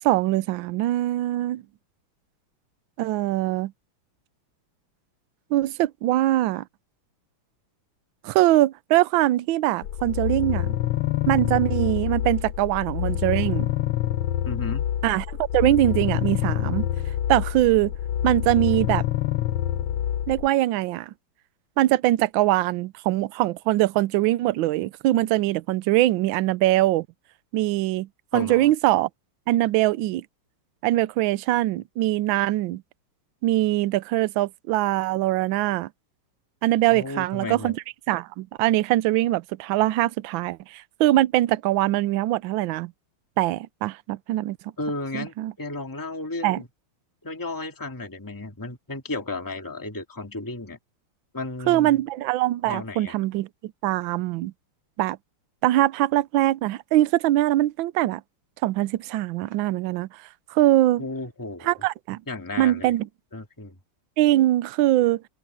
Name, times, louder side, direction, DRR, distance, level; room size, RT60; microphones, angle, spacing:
voice 1, 0.0-1.6 3.0-3.7 5.5-6.6 8.2-10.7 11.3-13.7 15.0-16.9 17.3-17.9 18.2-19.0 20.3-21.1 21.8-27.1 27.5-29.1 29.5-30.2 30.8-32.8 33.4-35.9 36.6-37.8 38.1-42.9 43.4-44.6 45.1-45.5 46.4-46.6 51.7-54.5 55.0-55.2 55.6-58.2 58.6-60.1 60.5-61.0 61.6-62.2 62.6-63.1 64.2-65.2, right 15 dB, 75° right, 1.3 m, -22 dB
sound 1, 9.8-20.5, left 11 dB, 75° left, 1.6 m, -26 dB
voice 2, 14.4-14.9 28.3-28.7 36.9-37.7 44.8-46.7 47.2-50.8 51.3-52.0 52.6-53.2 61.0-61.7 62.3-62.9 63.3-63.8, left 2 dB, 10° left, 2.1 m, -34 dB
open air
omnidirectional pair, 2.4 m